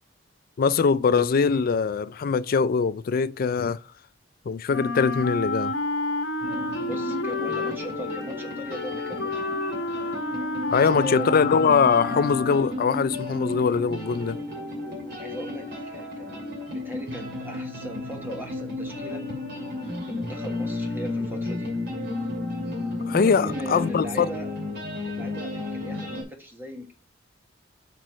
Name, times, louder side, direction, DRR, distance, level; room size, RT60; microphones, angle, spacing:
voice 1, 0.6-3.8 4.5-5.7 10.7-14.4 23.1-24.3, left 5 dB, 50° left, 0.4 m, -22 dB
Wind instrument woodwind instrument, 4.7-12.8, left 2 dB, 75° left, 1.1 m, -30 dB
sound 1, 6.4-26.2, left 2 dB, 60° right, 2.6 m, -33 dB
voice 2, 6.8-9.6 10.7-11.3 15.2-19.2 20.0-21.7 23.2-24.5 25.0-26.9, right 1 dB, 10° right, 1.3 m, -38 dB
6.1 x 4.6 x 5.7 m
head